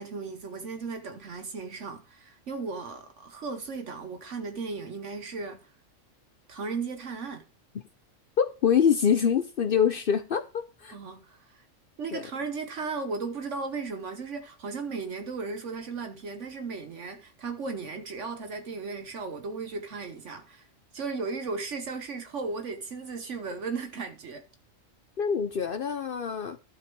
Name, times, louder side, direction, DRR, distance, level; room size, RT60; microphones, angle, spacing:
voice 1, 0.0-5.6 6.5-7.4 10.9-11.6 12.0-20.7 20.9-24.4, right 4 dB, 65° right, 1.3 m, -36 dB
voice 2, 8.4-10.4 10.8-11.0 12.1-12.2 25.2-26.6, left 7 dB, 55° left, 0.7 m, -25 dB
12.5 x 5.6 x 4.5 m
omnidirectional pair, 1.3 m